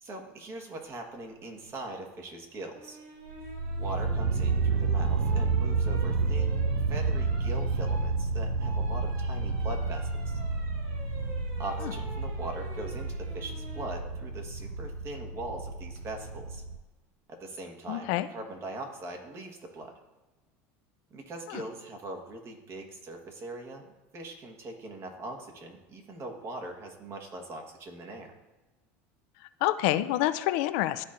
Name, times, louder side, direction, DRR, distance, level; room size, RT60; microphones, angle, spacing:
voice 1, 0.0-3.0 3.8-10.4 11.6-16.6 17.3-19.9 21.1-28.3, right 2 dB, 40° right, 3 dB, 1.4 m, -41 dB
sound 1, 2.7-13.9 15.6-16.0, equal, 65° right, 1.8 m, -48 dB
sound 2, 3.3-16.8, right 3 dB, 85° right, 0.4 m, -30 dB
voice 2, 17.9-18.3 21.5-21.7 29.6-31.0, left 15 dB, 70° left, 13 dB, 0.4 m, -27 dB
12.0 x 4.2 x 2.6 m, 1.2 s
supercardioid pair, 115°, 7 cm